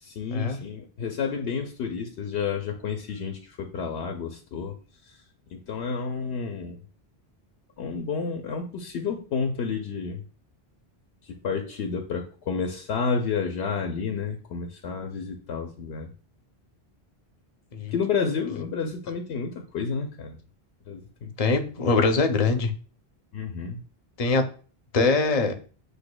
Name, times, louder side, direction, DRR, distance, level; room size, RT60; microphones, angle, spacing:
voice 1, 0.0-4.8 5.5-6.8 7.8-10.2 11.3-16.1 17.9-20.4 20.9-21.3 23.3-23.8, left 5 dB, 80° left, 4 dB, 0.8 m, -30 dB
voice 2, 21.4-22.7 24.2-24.4 24.9-25.5, left 3 dB, 45° left, 6 dB, 0.6 m, -22 dB
7.9 x 2.7 x 2.2 m, 0.38 s
omnidirectional pair, 1.1 m